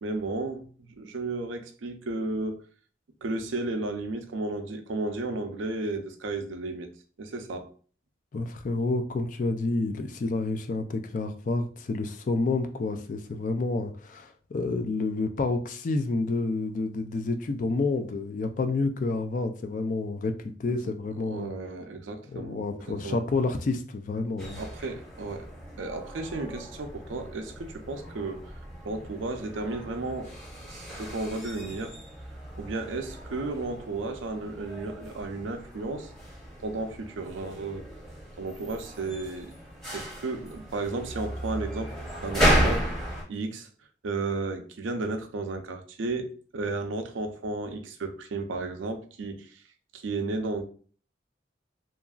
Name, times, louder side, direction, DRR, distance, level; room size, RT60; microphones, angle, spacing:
voice 1, 0.0-2.6 3.2-6.9 7.2-7.7 20.7-20.9 21.3-23.2 24.6-25.5 25.8-28.5 28.8-30.3 30.7-32.0 32.6-36.1 36.6-37.9 38.4-39.5 39.9-42.0 42.2-43.0 43.3-43.7 44.0-49.6 49.9-50.6, right 3 dB, 85° right, 0.5 m, -33 dB
voice 2, 8.3-21.5 22.3-24.6, left 3 dB, 40° left, 0.3 m, -29 dB
sound 1, 24.4-43.2, equal, ahead, 0.8 m, -34 dB
2.9 x 2.5 x 2.3 m
head